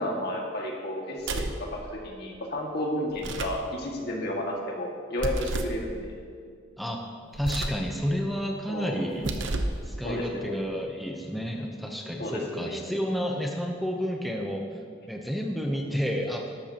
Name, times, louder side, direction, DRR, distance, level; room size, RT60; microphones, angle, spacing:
voice 1, 0.0-6.1 8.7-9.0 10.0-10.6 12.2-12.8, left 1 dB, 60° left, -1 dB, 2.0 m, -32 dB
sound 1, 1.2-1.7 3.1-3.6 5.2-5.8 7.3-7.9 9.1-9.8, right 2 dB, 90° right, 0.8 m, -31 dB
voice 2, 7.3-9.3 9.8-14.8 15.1-16.5, equal, ahead, 0 dB, 0.8 m, -30 dB
14.0 x 12.0 x 2.9 m, 2.1 s
head